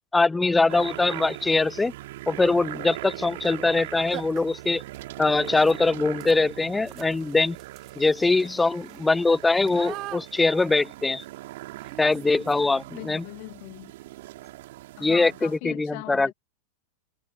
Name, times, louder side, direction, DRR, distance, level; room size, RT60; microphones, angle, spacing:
voice 1, 0.1-1.9 2.3-4.8 5.2-7.6 8.0-11.2 12.0-13.2 15.0-16.3, left 3 dB, 10° left, 0.5 m, -22 dB
sound 1, 0.6-0.7 1.3-1.7 3.4-3.5 3.8-3.9 4.1-13.0, right 16 dB, 35° right, 3.9 m, -45 dB
sound 2, 0.7-15.6, right 17 dB, 55° right, 6.2 m, -40 dB
voice 2, 13.0-13.9 15.0-16.3, left 31 dB, 45° left, 2.3 m, -40 dB
figure-of-eight pair, 90°, 0 cm